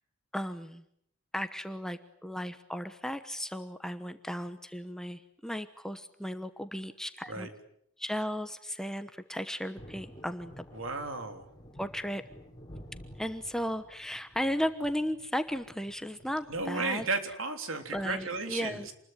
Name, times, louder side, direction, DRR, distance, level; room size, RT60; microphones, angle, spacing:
voice 1, 0.3-0.8 1.3-7.5 8.0-10.6 11.8-12.2 13.2-17.1 17.9-18.9, equal, ahead, 9 dB, 1.1 m, -35 dB
Thunder, 9.8-16.7, equal, 20° left, 3.3 m, -51 dB
voice 2, 10.7-11.5 16.5-18.9, right 3 dB, 70° right, 7 dB, 3.4 m, -34 dB
27.5 x 21.0 x 9.4 m, 0.72 s
head